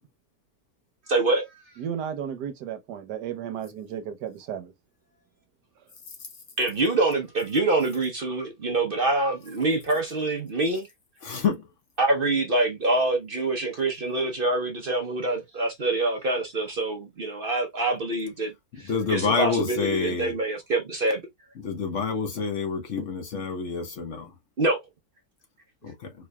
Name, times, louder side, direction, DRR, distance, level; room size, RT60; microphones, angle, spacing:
voice 1, 1.1-1.6 6.6-10.9 12.0-21.2 24.6-24.8, right 2 dB, 45° right, 0.7 m, -25 dB
voice 2, 1.8-4.7, right 8 dB, 85° right, 1.4 m, -34 dB
voice 3, 11.3-11.6 18.9-20.3 21.6-24.3 25.8-25.9, left 4 dB, 55° left, 1.2 m, -27 dB
4.6 x 3.0 x 2.2 m
omnidirectional pair, 1.7 m